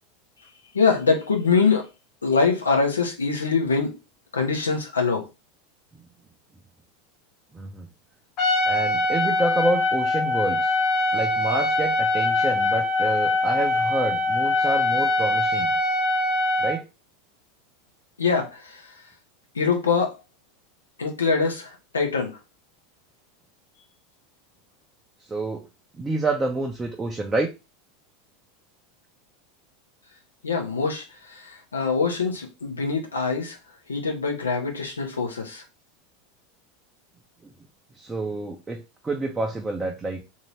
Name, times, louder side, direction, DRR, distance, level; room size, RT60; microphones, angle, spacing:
voice 1, 0.7-1.9 2.2-4.0 4.3-5.3 18.2-18.9 19.5-20.1 21.0-22.4 30.4-33.6 33.9-35.6, left 5 dB, 85° left, 0.8 m, -24 dB
voice 2, 7.5-7.9 8.7-10.7 11.1-15.7 16.6-16.9 25.3-25.6 26.0-27.5 37.9-40.2, right 2 dB, 15° right, 0.6 m, -28 dB
Trumpet, 8.4-16.8, left 2 dB, 45° left, 1.3 m, -23 dB
2.8 x 2.7 x 3.2 m
figure-of-eight pair, 80°, 0 cm